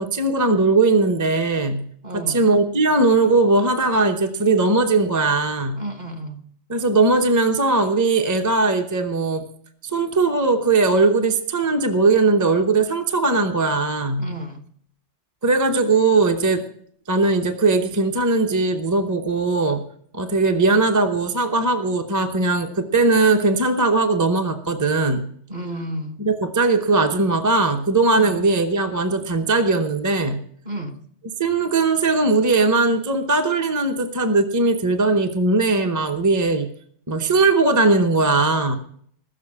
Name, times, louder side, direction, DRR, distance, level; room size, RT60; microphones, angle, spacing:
voice 1, 0.0-1.8 2.1-5.8 6.7-9.4 9.9-14.3 15.4-16.6 17.1-19.8 20.1-25.3 26.2-30.4 31.4-36.7 37.1-38.8, right 3 dB, 20° right, 0.7 m, -19 dB
voice 2, 2.0-2.4 5.8-6.4 14.2-14.6 25.5-26.2 28.1-28.3 30.6-31.0, right 1 dB, 35° right, 1.2 m, -31 dB
14.0 x 7.5 x 8.4 m
omnidirectional pair, 1.3 m